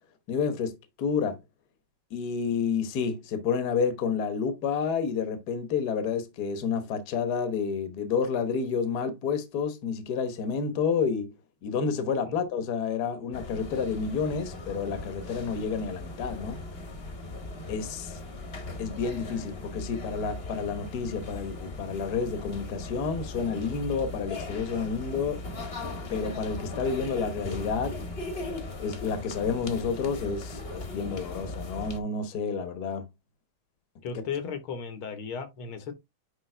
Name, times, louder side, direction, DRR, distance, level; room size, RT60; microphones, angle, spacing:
voice 1, 0.3-1.4 2.1-11.3 11.6-16.6 17.7-18.2 18.8-25.4 26.1-28.0 28.8-33.0, left 6 dB, 55° left, 1.5 m, -30 dB
sound 1, 13.3-32.0, left 2 dB, 35° left, 1.3 m, -38 dB
voice 2, 34.0-35.9, left 6 dB, 75° left, 2.1 m, -35 dB
9.7 x 3.5 x 3.3 m
omnidirectional pair, 2.3 m